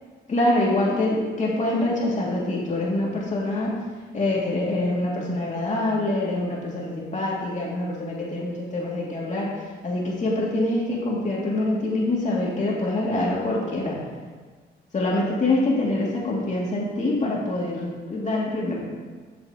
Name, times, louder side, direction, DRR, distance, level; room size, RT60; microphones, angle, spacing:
voice 1, 0.3-3.7 4.1-9.5 9.8-14.0 14.9-18.9, left 2 dB, 35° left, -5 dB, 2.4 m, -25 dB
11.0 x 7.2 x 2.9 m, 1.5 s
cardioid pair, 90°, 20 cm